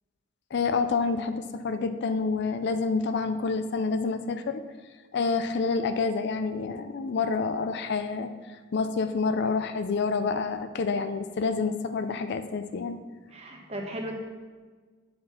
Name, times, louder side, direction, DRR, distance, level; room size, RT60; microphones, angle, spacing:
voice 1, 0.5-4.6 5.1-13.0, left 4 dB, 55° left, 10 dB, 0.4 m, -28 dB
voice 2, 13.3-14.1, right 1 dB, 30° right, 1 dB, 1.1 m, -36 dB
7.5 x 4.4 x 5.7 m, 1.4 s
head